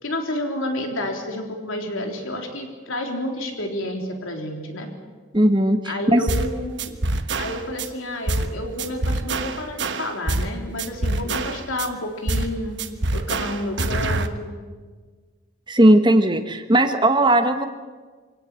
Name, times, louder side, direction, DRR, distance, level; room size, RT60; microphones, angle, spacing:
voice 1, 0.0-4.9 5.8-7.0 7.4-12.8 13.1-14.6, left 1 dB, 90° left, 3 dB, 3.8 m, -30 dB
voice 2, 5.3-6.2 15.7-17.7, right 1 dB, 25° right, 8 dB, 1.3 m, -17 dB
sound 1, 6.3-6.5 6.8-7.9 8.3-8.5 8.8-10.5 10.8-11.9 12.3-12.5 12.8-14.3, right 2 dB, 65° right, 1.3 m, -25 dB
25.0 x 17.5 x 8.5 m, 1.5 s
head